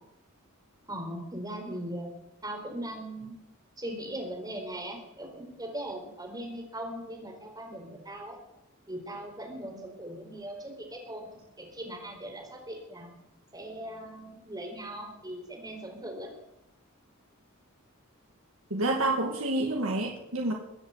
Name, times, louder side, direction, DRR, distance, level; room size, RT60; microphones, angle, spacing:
voice 1, 0.9-2.1 2.4-3.4 3.8-8.4 8.9-13.1 13.5-16.3, right 1 dB, 20° right, 2 dB, 4.2 m, -39 dB
voice 2, 18.7-20.5, right 2 dB, 70° right, 0 dB, 2.2 m, -28 dB
22.0 x 8.0 x 8.2 m, 0.90 s
head